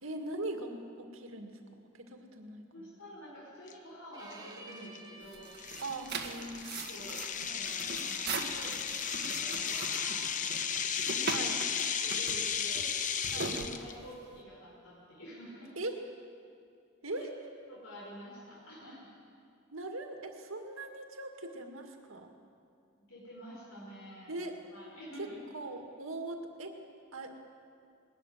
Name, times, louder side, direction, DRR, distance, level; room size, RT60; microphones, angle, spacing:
voice 1, 0.0-3.0 5.8-7.2 11.3-11.6 13.3-13.8 15.8-16.0 17.0-17.4 19.7-22.3 24.3-24.6 25.2-25.3 25.5-26.8 27.1-27.4, right 2 dB, 75° right, 4 dB, 2.1 m, -41 dB
voice 2, 2.7-5.5 6.3-6.4 6.9-9.1 9.4-10.5 11.0-11.5 12.0-13.1 13.3-15.7 17.1-17.2 17.7-19.1 23.1-24.4 24.7-25.4, equal, 85° left, -5 dB, 5.1 m, -49 dB
sound 1, 3.7-3.8 4.3-4.5 5.0-5.1 5.6-13.9, left 7 dB, 40° left, 0.8 m, -34 dB
Bowed string instrument, 4.1-10.0, right 2 dB, 20° right, 1.7 m, -54 dB
sound 2, 5.2-14.4, right 4 dB, 50° right, 1.6 m, -41 dB
20.5 x 13.5 x 9.5 m, 2.5 s
head